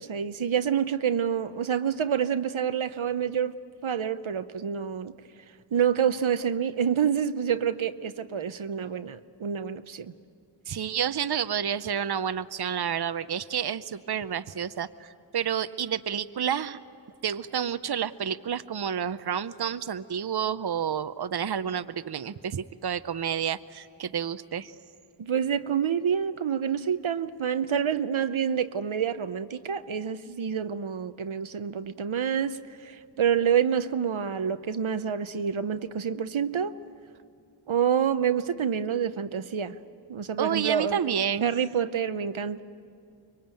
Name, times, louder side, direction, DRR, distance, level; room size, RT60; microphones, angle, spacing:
voice 1, 0.0-3.6 3.8-5.1 5.7-10.1 25.2-36.7 37.7-39.8 40.1-41.0 41.4-42.6, right 8 dB, 85° right, 11 dB, 0.8 m, -27 dB
voice 2, 10.7-16.8 17.2-24.7 40.4-41.5, right 8 dB, 55° right, 13 dB, 0.7 m, -30 dB
24.5 x 22.5 x 9.0 m, 2.3 s
wide cardioid pair, 50°, 46 cm